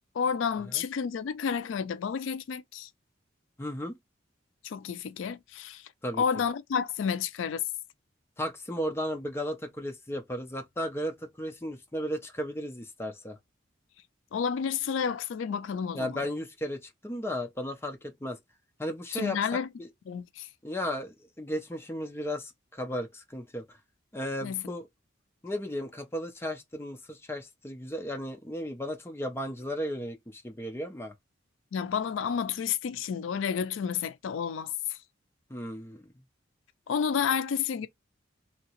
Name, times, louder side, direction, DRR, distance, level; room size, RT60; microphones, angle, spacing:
voice 1, 0.1-2.9 4.6-5.9 6.2-7.6 14.3-16.2 19.1-19.7 20.1-20.5 24.4-24.6 31.7-35.0 36.9-37.9, left 7 dB, 80° left, 0.4 m, -30 dB
voice 2, 3.6-4.0 6.0-6.2 8.4-13.4 15.9-18.4 18.8-19.4 19.8-19.9 20.6-23.8 24.1-24.9 25.4-31.2 35.5-36.1, equal, 15° left, 0.5 m, -35 dB
2.8 x 2.8 x 2.9 m
head